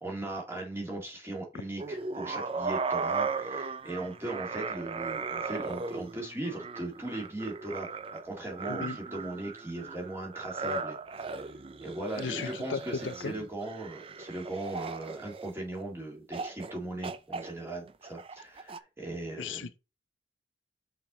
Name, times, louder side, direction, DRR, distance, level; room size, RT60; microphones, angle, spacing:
voice 1, 0.0-11.5 11.8-19.7, right 2 dB, 15° right, 2.0 m, -38 dB
sound 1, 1.8-15.8 16.3-16.7 17.0-18.8, right 4 dB, 30° right, 0.4 m, -37 dB
voice 2, 12.2-13.3 19.4-19.8, left 5 dB, 75° left, 0.5 m, -36 dB
5.8 x 4.5 x 3.9 m
head